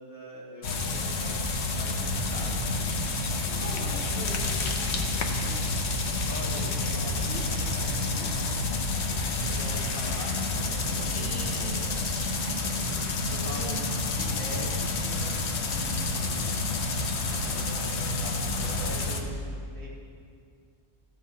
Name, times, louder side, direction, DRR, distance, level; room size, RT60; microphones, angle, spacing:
voice 1, 0.0-2.0 2.3-3.0 3.4-3.9 6.3-8.3 9.1-11.3 11.6-11.7 12.6-12.7 13.3-13.7 14.1-14.7 15.0-16.6 17.2-19.9, equal, 15° right, -6 dB, 2.2 m, -43 dB
sound 1, 0.6-19.2, left 3 dB, 70° left, 1.1 m, -29 dB
voice 2, 3.6-5.9 11.1-11.8 12.4-14.2, right 2 dB, 60° right, -10 dB, 2.1 m, -42 dB
14.0 x 5.5 x 5.5 m, 2.3 s
omnidirectional pair, 1.2 m